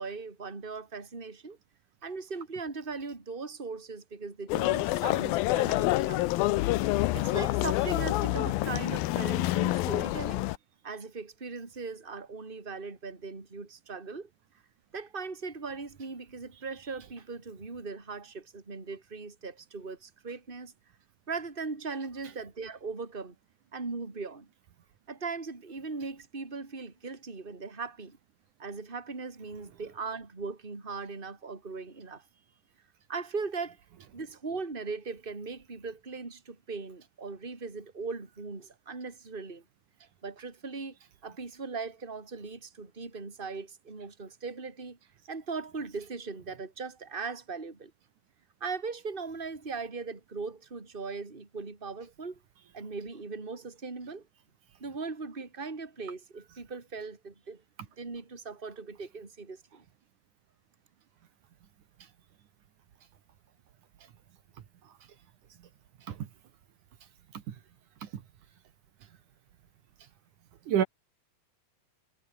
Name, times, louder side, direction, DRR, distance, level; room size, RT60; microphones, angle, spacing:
voice 1, 0.0-1.6 2.0-6.2 7.1-10.5 10.8-14.3 14.9-20.7 21.3-23.3 23.7-24.5 25.1-28.2 28.6-32.2 33.1-33.8 34.1-39.6 40.2-41.0 41.2-45.0 45.3-47.9 48.6-52.4 52.7-54.2 54.8-57.6 58.0-59.8, right 4 dB, 15° right, 3.2 m, -39 dB
sound 1, 4.5-10.6, left 17 dB, 85° left, 2.7 m, -27 dB
voice 2, 66.0-66.3 67.0-67.6 68.0-68.2 70.0-70.1 70.6-70.8, right 9 dB, 65° right, 3.0 m, -33 dB
omnidirectional pair, 4.1 m